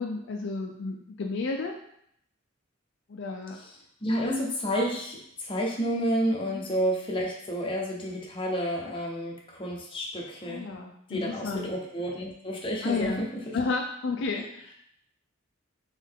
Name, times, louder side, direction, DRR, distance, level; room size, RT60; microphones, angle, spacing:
voice 1, 0.0-1.7 3.1-3.6 6.5-6.7 10.4-11.7 12.8-13.3 13.5-14.7, left 3 dB, 60° left, 2 dB, 0.4 m, -32 dB
voice 2, 4.0-10.6 11.1-13.6, equal, 25° left, -1 dB, 0.8 m, -30 dB
3.7 x 3.2 x 3.6 m, 0.70 s
head